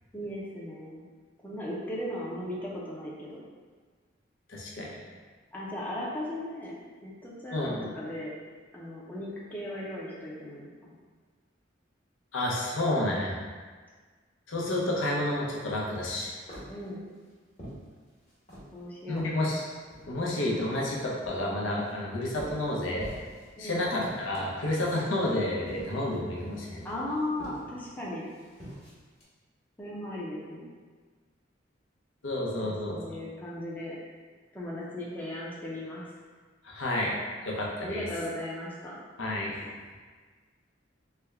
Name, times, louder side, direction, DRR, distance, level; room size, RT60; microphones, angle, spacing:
voice 1, 0.1-1.0 1.4-3.4 5.5-8.4 8.7-10.9 16.7-17.0 18.7-19.2 23.6-23.8 26.8-28.3 29.8-30.7 32.6-34.0 34.5-36.1 37.8-38.9, left 1 dB, 10° left, -6 dB, 0.5 m, -37 dB
voice 2, 4.5-5.0 7.5-7.9 12.3-13.4 14.5-16.3 19.1-19.6 20.1-23.1 23.6-26.9 32.2-33.0 36.6-37.2 37.4-38.1 39.2-39.6, left 1 dB, 90° left, -3 dB, 0.7 m, -30 dB
sound 1, 16.1-18.8 19.2-20.3 20.7-23.5 23.8-29.2, equal, 35° left, 1.1 m, -47 dB
3.4 x 2.1 x 3.4 m, 1.5 s
head